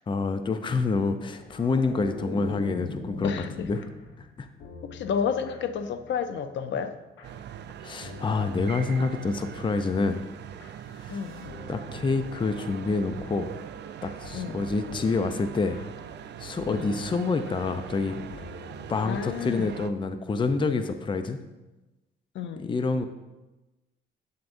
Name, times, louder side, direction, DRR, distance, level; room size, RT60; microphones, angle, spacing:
voice 1, 0.1-3.9 4.2-4.5 7.8-10.2 11.0-11.2 11.7-13.5 14.0-15.8 16.4-18.2 18.9-21.4 22.6-23.0, left 4 dB, 25° left, 9 dB, 0.5 m, -27 dB
sound 1, 1.1-4.3 4.7-5.1, left 2 dB, 50° left, 1.8 m, -38 dB
voice 2, 3.2-3.7 4.8-6.9 11.1-11.5 14.3-14.7 16.7-16.9 19.0-19.7 22.3-22.7, left 7 dB, 70° left, 9 dB, 0.6 m, -31 dB
sound 2, 3.3-7.7 8.0-19.6, left 4 dB, 85° left, 1.1 m, -49 dB
sound 3, 7.2-19.9, right 9 dB, 60° right, 0.5 m, -41 dB
8.4 x 7.6 x 2.6 m, 1.1 s
cardioid pair, 90°, 20 cm